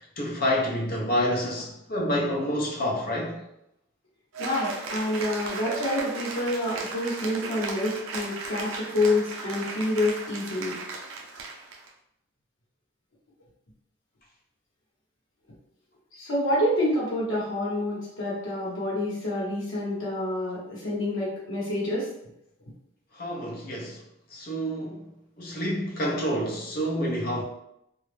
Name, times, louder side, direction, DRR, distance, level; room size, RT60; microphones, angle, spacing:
voice 1, 0.0-3.4 23.1-24.0 24.3-25.1 25.4-27.4, equal, 45° left, -2 dB, 0.6 m, -28 dB
Cheering / Applause, 4.3-11.9, right 3 dB, 85° right, 0.4 m, -36 dB
voice 2, 4.4-10.7 16.1-22.1, left 1 dB, 85° left, -6 dB, 0.9 m, -28 dB
2.3 x 2.0 x 3.1 m, 0.79 s
head